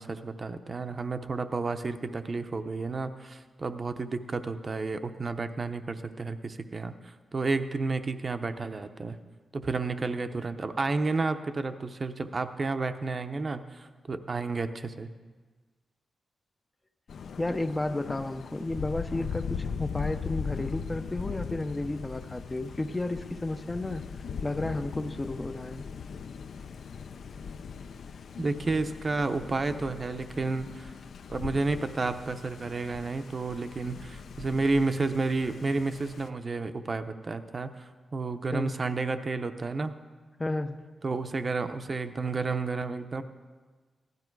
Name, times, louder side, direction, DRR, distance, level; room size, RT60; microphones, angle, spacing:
voice 1, 0.0-9.2 9.5-15.1 28.4-30.9 31.3-39.9 41.0-43.2, right 3 dB, 35° right, 9 dB, 0.6 m, -31 dB
Thunder, 17.1-36.3, left 6 dB, 65° left, 0.5 m, -39 dB
voice 2, 17.4-24.0 24.4-25.9 38.5-38.7 40.4-40.8, left 2 dB, 15° left, 9 dB, 0.5 m, -32 dB
16.5 x 12.0 x 4.6 m, 1.4 s
wide cardioid pair, 155°, 0 cm